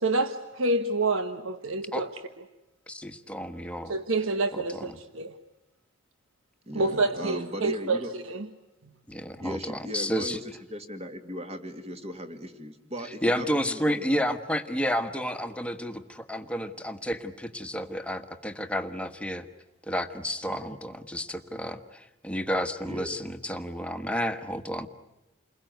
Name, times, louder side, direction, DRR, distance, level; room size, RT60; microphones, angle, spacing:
voice 1, 0.0-2.1 3.9-5.3 6.7-8.5, right 2 dB, 85° right, 1.2 m, -28 dB
voice 2, 2.9-3.9 4.5-4.9 9.1-10.4 13.2-19.5 19.9-24.9, equal, 5° left, 1.4 m, -31 dB
voice 3, 6.7-8.1 9.4-14.2 20.5-20.8 22.8-23.2, equal, 30° right, 2.3 m, -38 dB
29.5 x 21.5 x 9.3 m
head